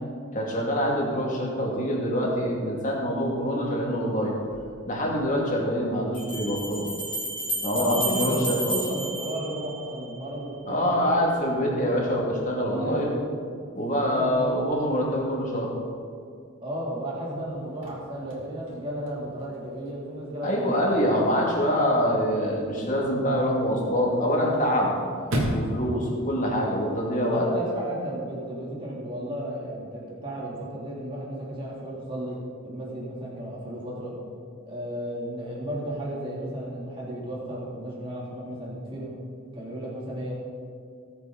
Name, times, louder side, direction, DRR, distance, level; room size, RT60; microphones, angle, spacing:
voice 1, 0.3-4.3 4.9-6.9 7.6-8.8 10.7-13.2 13.7-15.7 20.4-25.0 25.5-27.4, equal, 35° left, -3 dB, 2.6 m, -25 dB
sound 1, 4.5-4.6 6.1-10.1, right 1 dB, 5° left, 3.3 m, -32 dB
voice 2, 7.7-11.1 11.7-12.0 12.6-13.3 14.1-14.5 16.6-21.2 27.3-32.4 32.6-34.1 34.6-39.1 39.5-40.3, right 1 dB, 25° right, -6 dB, 3.3 m, -34 dB
Chirp tweet / Car / Slam, 17.5-27.5, equal, 65° right, 2.7 m, -37 dB
19.0 x 8.3 x 4.1 m, 2.3 s
head